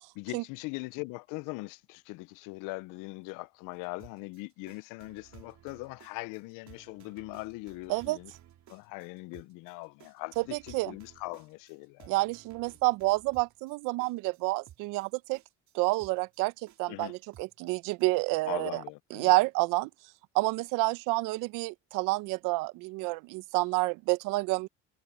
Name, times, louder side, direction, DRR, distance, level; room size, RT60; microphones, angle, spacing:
voice 1, 0.2-8.3 8.7-12.1 16.9-17.1 18.5-19.3, left 24 dB, 75° left, 1.0 m, -41 dB
sound 1, 3.8-18.0, right 11 dB, 55° right, 3.8 m, -56 dB
voice 2, 10.4-10.9 12.1-15.4 15.7-16.5 16.8-18.8 19.1-19.9 20.3-24.7, right 24 dB, 75° right, 1.1 m, -29 dB
hypercardioid pair, 65°, 33 cm